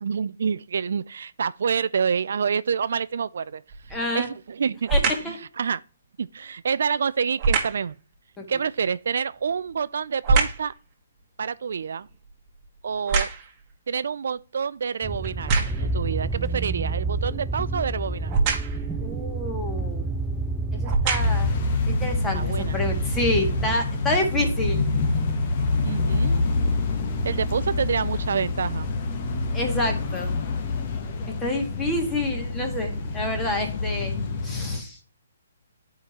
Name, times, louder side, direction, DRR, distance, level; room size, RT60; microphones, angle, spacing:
voice 1, 0.0-3.6 4.1-4.9 5.3-5.8 6.2-7.9 8.5-10.7 11.4-12.1 12.8-13.3 13.9-18.3 22.3-22.8 25.8-26.4 27.2-28.9, right 6 dB, 65° right, 0.3 m, -27 dB
sound 1, 3.7-4.1 4.8-5.4 7.4-7.9 9.3-10.7 11.2-13.7 14.4-14.5 15.2-16.0 18.3-18.9 19.9-20.0 20.7-21.5 22.2-22.3, right 4 dB, 25° right, 1.5 m, -25 dB
voice 2, 3.9-4.3 4.9-5.4 8.4-8.5 19.0-20.0 20.7-21.5 21.9-24.9 29.5-30.3 31.3-34.1 34.4-35.0, left 1 dB, 10° left, 1.6 m, -28 dB
sound 2, 15.0-23.8, right 3 dB, 5° right, 0.5 m, -29 dB
sound 3, 21.2-34.8, left 3 dB, 35° left, 1.1 m, -27 dB
11.0 x 5.0 x 2.9 m
hypercardioid pair, 155°, 0 cm